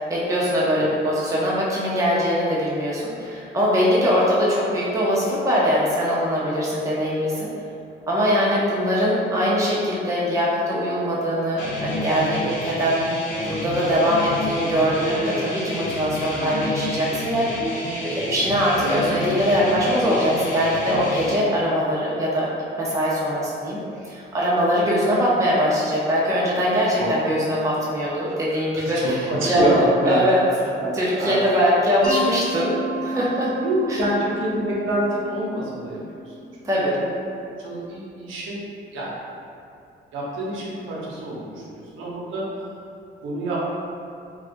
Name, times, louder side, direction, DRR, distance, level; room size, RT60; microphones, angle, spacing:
voice 1, 0.0-7.5 8.1-17.5 18.0-22.5 22.8-23.8 24.0-30.4 30.9-33.5 33.9-34.0 36.6-37.0, equal, 15° right, -6 dB, 0.6 m, -22 dB
sound 1, 11.6-21.4, left 1 dB, 85° left, 0.7 m, -30 dB
voice 2, 28.3-30.2 30.6-31.4 33.5-37.2 37.6-38.6 38.9-39.1 40.1-42.4 43.2-43.6, right 1 dB, 80° right, -5 dB, 0.7 m, -27 dB
Mallet percussion, 32.0-36.8, left 1 dB, 45° left, 0.9 m, -32 dB
4.1 x 2.3 x 2.5 m, 2.5 s
cardioid pair, 90°, 20 cm